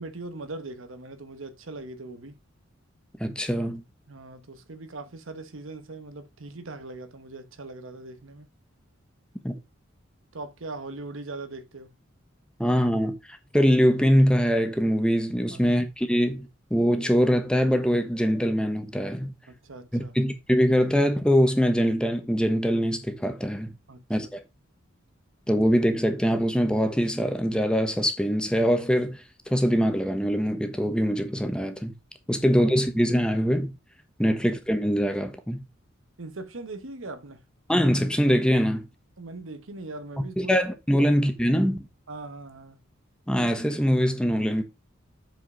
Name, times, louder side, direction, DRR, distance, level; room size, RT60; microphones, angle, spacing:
voice 1, 0.0-2.4 4.1-8.5 10.3-11.9 15.5-15.6 19.5-20.1 23.9-24.0 32.6-32.7 34.2-34.3 36.2-37.4 39.2-40.5 41.0-41.1 42.1-42.8, right 2 dB, 80° right, 1.1 m, -40 dB
voice 2, 3.2-3.8 9.4-9.5 12.6-19.3 19.9-23.7 24.1-24.4 25.5-31.9 32.3-33.7 34.2-35.6 37.7-38.8 40.4-41.9 43.3-44.6, equal, 5° left, 1.2 m, -23 dB
7.9 x 4.9 x 4.9 m
head